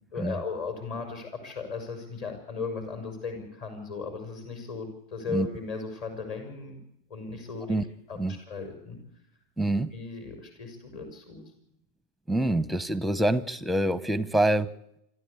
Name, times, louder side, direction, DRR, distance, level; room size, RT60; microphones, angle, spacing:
voice 1, 0.1-6.8 7.1-7.8 8.1-9.0 9.9-11.4, left 4 dB, 45° left, 5 dB, 5.9 m, -36 dB
voice 2, 9.6-9.9 12.3-14.7, right 1 dB, ahead, 18 dB, 0.8 m, -25 dB
26.5 x 13.0 x 8.4 m, 0.80 s
figure-of-eight pair, 90°, 0 cm